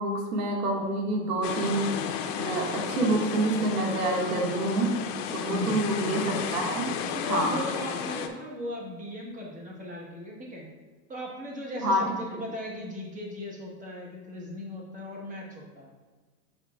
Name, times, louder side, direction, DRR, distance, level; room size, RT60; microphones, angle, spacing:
voice 1, 0.0-1.9 2.4-4.9 5.3-6.9 7.2-7.5 11.8-12.0, right 2 dB, 70° right, 0 dB, 1.8 m, -27 dB
sound 1, 1.4-8.3, left 8 dB, 50° left, 0.7 m, -33 dB
voice 2, 5.5-6.1 7.1-10.7 11.1-15.9, left 1 dB, 15° right, -2 dB, 1.2 m, -37 dB
8.3 x 5.1 x 2.3 m, 1.3 s
supercardioid pair, 140°, 48 cm